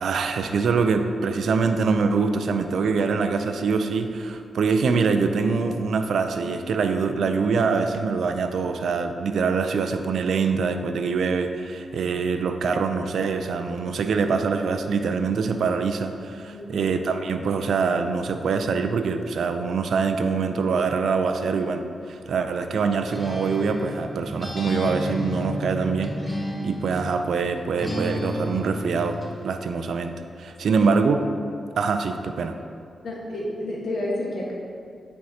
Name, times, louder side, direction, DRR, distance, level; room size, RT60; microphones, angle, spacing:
voice 1, 0.0-26.1 26.6-31.2 31.8-32.6, right 5 dB, 80° right, 7 dB, 0.4 m, -24 dB
voice 2, 16.5-16.9 30.6-30.9 33.0-34.5, left 1 dB, 70° left, -4 dB, 1.4 m, -30 dB
Acoustic guitar, 23.1-27.2 27.8-29.4, equal, 15° left, 0.9 m, -31 dB
8.6 x 4.5 x 2.8 m, 2.4 s
cardioid pair, 90°, 0 cm